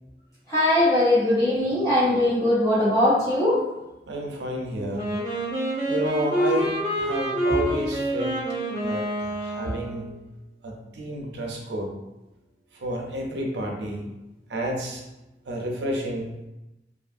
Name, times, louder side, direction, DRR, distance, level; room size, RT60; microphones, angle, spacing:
voice 1, 0.5-3.6, left 1 dB, 20° left, -11 dB, 0.6 m, -20 dB
voice 2, 4.1-5.1 5.9-8.4 8.8-10.2 10.6-11.9 12.7-14.1 14.5-15.0 15.5-16.4, right 1 dB, 85° right, 0 dB, 0.5 m, -30 dB
Wind instrument woodwind instrument, 4.9-10.1, equal, 25° right, 0.6 m, -27 dB
2.6 x 2.4 x 2.5 m, 0.97 s
head